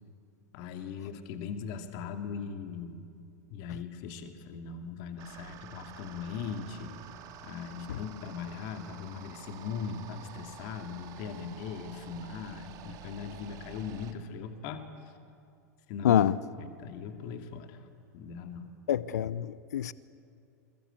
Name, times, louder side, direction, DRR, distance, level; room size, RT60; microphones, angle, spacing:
voice 1, 0.5-3.1 3.5-6.9 7.4-14.8 15.9-16.3 16.6-17.8 18.1-18.7, left 6 dB, 50° left, 6 dB, 2.5 m, -39 dB
sound 1, 5.2-14.1, right 10 dB, 45° right, 2.7 m, -49 dB
voice 2, 16.0-16.4 18.9-19.9, left 10 dB, 70° left, 19 dB, 0.7 m, -26 dB
28.5 x 22.5 x 8.3 m, 2.4 s
hypercardioid pair, 95°, 9 cm